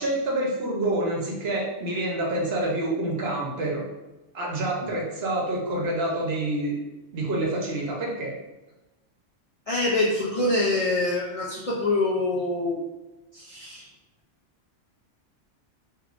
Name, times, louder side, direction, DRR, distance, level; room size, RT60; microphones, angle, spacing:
voice 1, 0.0-3.8 4.3-6.8 7.1-8.3, right 1 dB, 60° right, -2 dB, 1.0 m, -27 dB
voice 2, 9.7-12.8 13.3-13.9, left 2 dB, 65° left, -5 dB, 0.3 m, -25 dB
3.5 x 2.9 x 2.4 m, 1.1 s
omnidirectional pair, 1.3 m